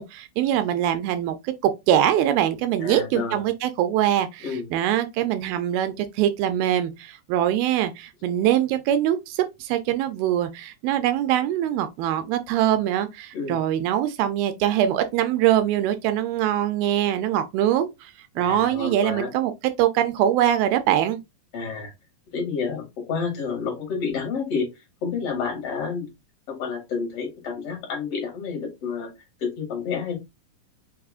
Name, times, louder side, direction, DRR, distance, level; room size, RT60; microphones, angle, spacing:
voice 1, 0.0-19.5 19.8-21.2, right 11 dB, 80° right, 2.3 m, -23 dB
voice 2, 2.8-3.4 4.4-4.7 13.3-13.6 18.4-19.3 21.5-21.9 22.3-24.7 25.0-26.1 26.5-29.1 29.4-30.2, left 5 dB, 45° left, 2.4 m, -29 dB
6.0 x 2.9 x 2.4 m
omnidirectional pair, 4.3 m